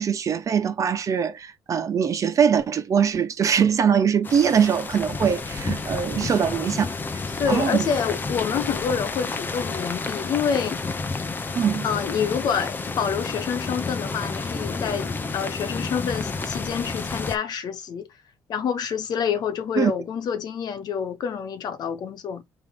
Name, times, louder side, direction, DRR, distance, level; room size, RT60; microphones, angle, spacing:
voice 1, 0.0-6.9 7.5-7.9 11.5-11.9 19.7-19.9, right 7 dB, 45° right, 1.1 m, -22 dB
sound 1, 4.2-17.4, left 3 dB, 25° left, 0.8 m, -30 dB
voice 2, 6.3-6.7 7.4-10.8 11.8-18.1 18.5-22.4, left 7 dB, 65° left, 1.2 m, -27 dB
5.1 x 3.0 x 3.4 m
cardioid pair, 120°, 8 cm